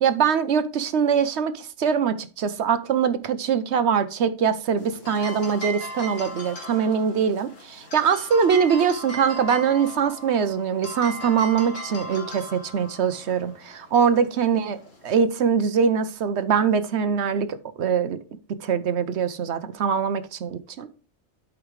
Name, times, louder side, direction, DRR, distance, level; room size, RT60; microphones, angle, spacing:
voice 1, 0.0-14.8 15.0-18.2 18.6-20.9, right 7 dB, 65° right, 0.9 m, -23 dB
sound 1, 4.8-15.2, equal, 75° left, 2.2 m, -38 dB
12.0 x 5.0 x 3.2 m
omnidirectional pair, 1.3 m